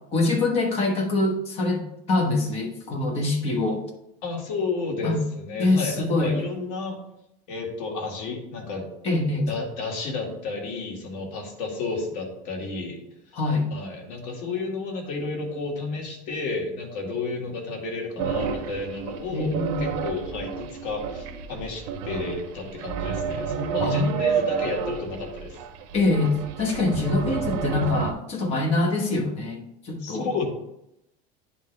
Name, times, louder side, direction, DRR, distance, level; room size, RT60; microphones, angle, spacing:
voice 1, 0.1-3.8 5.0-5.2 5.6-6.4 9.0-9.5 13.3-13.7 19.3-20.0 23.8-24.0 25.9-30.3, left 2 dB, 30° left, 2 dB, 1.2 m, -24 dB
voice 2, 4.2-7.0 7.5-8.9 9.5-13.0 13.7-25.6 30.0-30.5, left 3 dB, 90° left, 0 dB, 1.9 m, -31 dB
sound 1, 18.2-28.1, right 7 dB, 80° right, 0.7 m, -30 dB
10.0 x 3.8 x 3.3 m, 0.84 s
cardioid pair, 175°, 20 cm